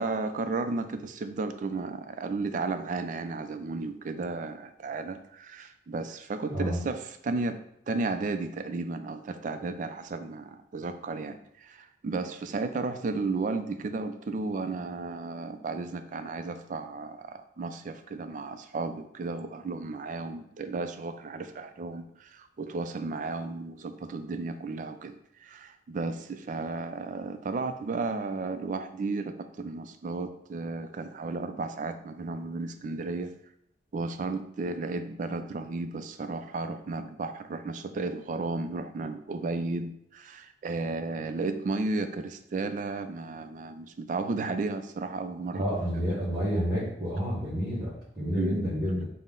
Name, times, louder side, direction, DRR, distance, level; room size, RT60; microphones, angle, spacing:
voice 1, 0.0-7.6 7.9-33.3 33.9-45.6 48.3-48.7, right 3 dB, 45° right, 9 dB, 0.3 m, -33 dB
voice 2, 6.5-6.8 45.5-49.0, equal, 20° right, -6 dB, 1.0 m, -29 dB
5.6 x 2.1 x 3.7 m, 0.74 s
head